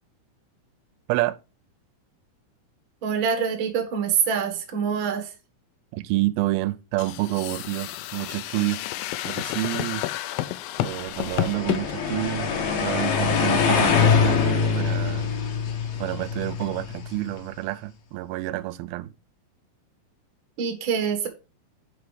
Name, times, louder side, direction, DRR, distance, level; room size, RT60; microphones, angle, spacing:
voice 1, 3.0-5.3 20.6-21.3, right 7 dB, 65° right, 1.2 m, -25 dB
voice 2, 5.9-8.8 9.2-10.0 10.8-15.3 16.0-19.1, right 18 dB, 90° right, 2.4 m, -28 dB
sound 1, 7.0-11.8, left 15 dB, 80° left, 2.2 m, -30 dB
sound 2, 11.1-17.3, left 6 dB, 65° left, 2.0 m, -24 dB
5.7 x 5.0 x 4.7 m
omnidirectional pair, 4.2 m